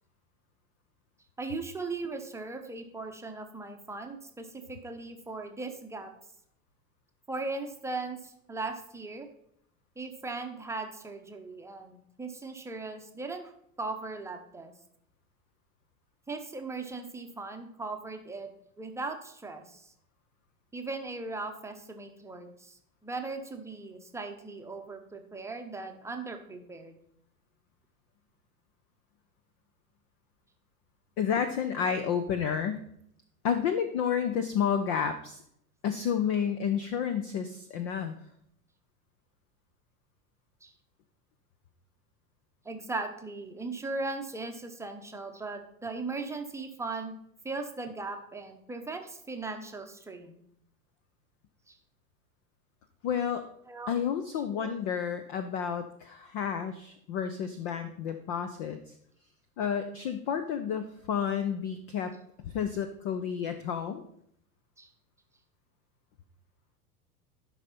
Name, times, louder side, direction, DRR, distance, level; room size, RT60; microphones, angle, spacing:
voice 1, 1.4-6.1 7.3-9.3 10.0-13.5 13.8-14.7 16.3-18.5 18.8-19.9 20.7-27.0 40.6-40.7 42.6-47.1 47.4-50.4 51.7-51.8 53.7-53.9 54.5-54.7 64.8-64.9, right 3 dB, 5° right, 5 dB, 0.8 m, -38 dB
voice 2, 31.2-32.8 33.4-35.4 35.8-38.2 53.0-53.5 53.9-58.8 59.6-62.1 62.4-64.0, left 7 dB, 25° left, 9 dB, 0.4 m, -30 dB
12.0 x 5.5 x 4.2 m, 0.72 s
figure-of-eight pair, 85°, 45 cm